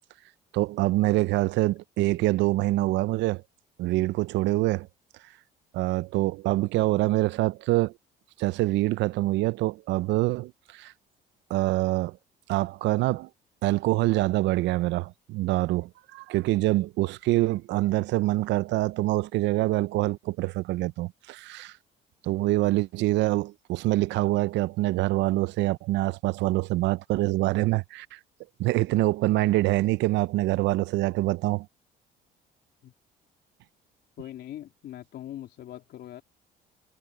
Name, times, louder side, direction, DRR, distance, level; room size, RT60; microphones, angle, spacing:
voice 1, 0.5-3.4 3.8-4.9 5.7-7.9 8.4-10.9 11.5-12.2 12.5-13.3 13.6-21.7 22.2-28.2 28.6-31.7, right 18 dB, 75° right, 0.6 m, -25 dB
voice 2, 34.2-36.2, left 12 dB, 65° left, 3.2 m, -41 dB
supercardioid pair, 80°, 19 cm